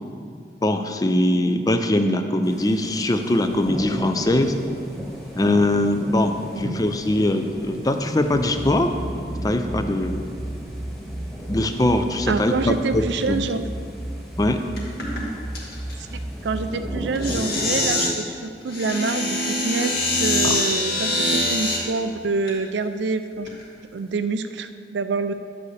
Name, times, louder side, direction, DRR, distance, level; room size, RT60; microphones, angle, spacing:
voice 1, 0.6-4.6 5.3-8.9 9.4-10.2 11.5-13.4 14.4-14.6 20.4-20.6, left 1 dB, 20° left, 7 dB, 0.4 m, -22 dB
sound 1, 2.4-17.9, equal, ahead, 1.5 m, -36 dB
sound 2, 8.3-17.4, right 1 dB, 40° right, 0.7 m, -34 dB
voice 2, 12.3-13.6 16.0-23.5 23.9-25.3, right 4 dB, 85° right, 10 dB, 0.5 m, -27 dB
sound 3, 14.8-15.2 15.5-15.9 17.1-18.1 18.7-21.8 22.5-22.6 23.3-23.6, left 1 dB, 60° left, 2.0 m, -24 dB
10.5 x 8.1 x 3.3 m, 2.2 s
head